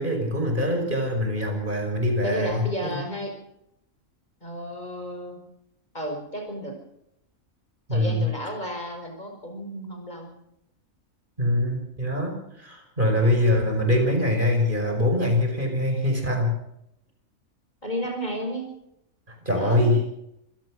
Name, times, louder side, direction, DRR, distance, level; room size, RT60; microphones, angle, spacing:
voice 1, 0.0-3.0 7.9-8.3 11.4-16.5 19.3-20.0, left 1 dB, 35° right, 3 dB, 5.5 m, -23 dB
voice 2, 2.2-3.3 4.4-5.4 5.9-6.8 7.9-10.3 17.8-18.7 19.5-19.9, equal, 30° left, 3 dB, 5.8 m, -32 dB
26.0 x 16.5 x 6.4 m, 0.79 s
omnidirectional pair, 1.5 m